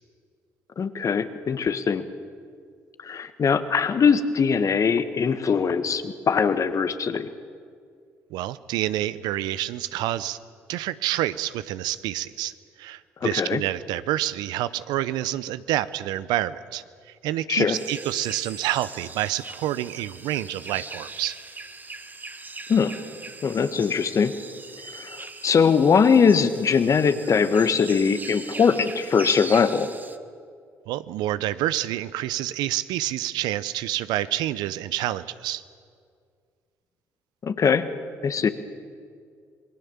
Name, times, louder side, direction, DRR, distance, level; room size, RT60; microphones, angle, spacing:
voice 1, 0.8-2.1 3.0-7.3 13.2-13.6 17.5-17.8 22.7-23.0 23.4-24.3 24.9-29.9 37.4-37.9 38.2-38.5, left 6 dB, 45° left, 11 dB, 1.5 m, -21 dB
voice 2, 8.3-10.4 10.7-12.5 12.8-16.8 17.2-21.4 30.9-35.6, right 14 dB, 75° right, 16 dB, 0.7 m, -28 dB
sound 1, 17.7-30.2, right 3 dB, 25° right, 1.5 m, -40 dB
27.0 x 21.5 x 7.2 m, 2.2 s
hypercardioid pair, 50°, 7 cm